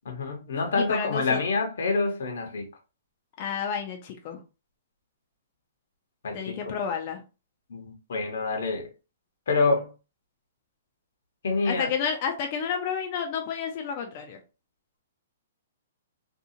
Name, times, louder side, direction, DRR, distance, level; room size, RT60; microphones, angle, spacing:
voice 1, 0.1-2.7 6.2-6.6 7.7-8.9 9.5-9.9 11.4-11.9, left 3 dB, 70° left, 0.9 m, -27 dB
voice 2, 0.7-1.4 3.4-4.4 6.3-7.2 11.6-14.4, left 7 dB, 35° left, 0.4 m, -30 dB
2.6 x 2.3 x 2.7 m
hypercardioid pair, 165°, 0 cm